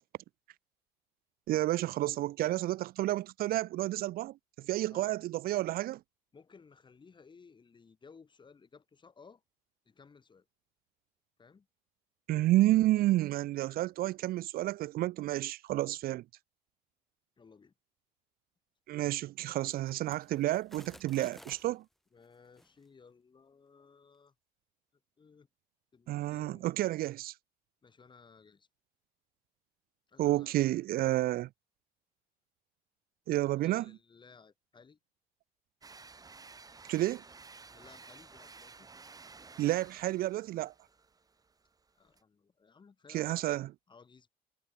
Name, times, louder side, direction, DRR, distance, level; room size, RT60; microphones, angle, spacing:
voice 1, 1.5-6.0 12.3-16.2 18.9-21.8 26.1-27.3 30.2-31.5 33.3-33.9 36.9-37.2 39.6-40.7 43.1-43.7, right 16 dB, 65° right, 0.4 m, -30 dB
voice 2, 6.3-9.4 9.8-10.5 11.4-11.7 17.4-17.7 22.1-24.3 25.2-25.5 25.9-26.7 27.8-28.7 30.1-30.6 33.6-35.0 37.7-38.9 42.0-43.5 43.9-44.3, left 5 dB, 30° left, 2.5 m, -58 dB
sound 1, 19.4-21.8 22.4-22.7, equal, ahead, 0.6 m, -56 dB
sound 2, 35.8-42.2, right 4 dB, 20° right, 1.7 m, -54 dB
cardioid pair, 110°, 17 cm